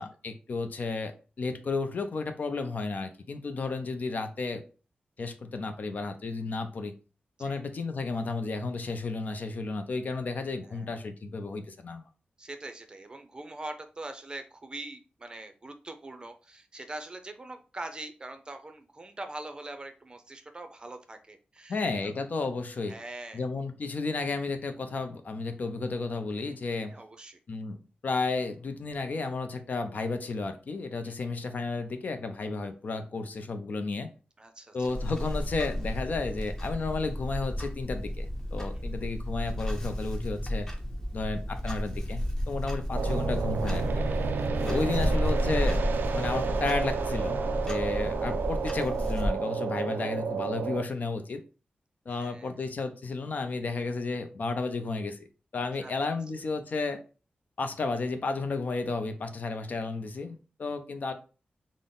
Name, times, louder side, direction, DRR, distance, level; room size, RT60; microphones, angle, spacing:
voice 1, 0.0-4.6 5.2-6.9 7.4-12.0 21.7-23.0 23.3-27.0 27.5-34.1 34.7-40.7 41.1-43.9 44.6-45.8 46.1-47.4 47.6-51.4 52.1-55.2 55.5-57.0 57.6-61.1, left 3 dB, 55° left, 0.5 m, -33 dB
voice 2, 10.6-11.1 12.4-21.8 22.9-23.4 26.9-27.4 31.0-31.1 34.4-34.9 44.6-44.8 52.1-52.6 55.8-55.9, right 2 dB, 25° right, 0.5 m, -43 dB
Clock, 34.8-49.3, equal, 15° left, 0.7 m, -32 dB
sound 1, 43.0-50.8, right 5 dB, 80° right, 0.4 m, -31 dB
3.7 x 2.0 x 3.7 m
wide cardioid pair, 105°, 3 cm